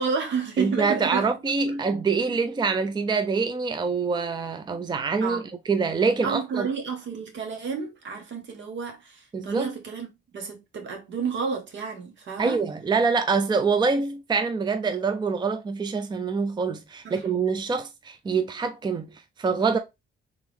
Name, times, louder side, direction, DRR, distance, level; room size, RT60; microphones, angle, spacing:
voice 1, 0.0-1.3 1.6-1.7 5.2-5.5 6.2-12.6 17.0-17.2, right 5 dB, 65° right, 1.4 m, -31 dB
voice 2, 0.6-5.4 5.7-6.7 9.3-9.7 12.4-19.8, right 4 dB, 20° right, 0.5 m, -25 dB
3.5 x 3.1 x 3.4 m
cardioid pair, 90°, 20 cm